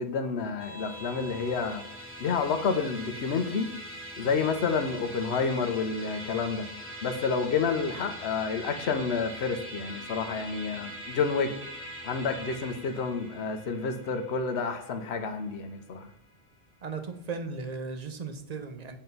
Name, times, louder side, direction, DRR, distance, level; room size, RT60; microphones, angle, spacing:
voice 1, 0.0-1.8 2.2-3.7 4.2-6.7 7.0-11.5 12.0-16.1, left 5 dB, 75° left, 7 dB, 1.1 m, -29 dB
Musical instrument, 0.6-16.1, right 1 dB, 10° right, 1.6 m, -43 dB
voice 2, 16.8-19.0, right 4 dB, 40° right, 7 dB, 0.9 m, -36 dB
7.8 x 4.3 x 5.4 m, 0.76 s
omnidirectional pair, 1.1 m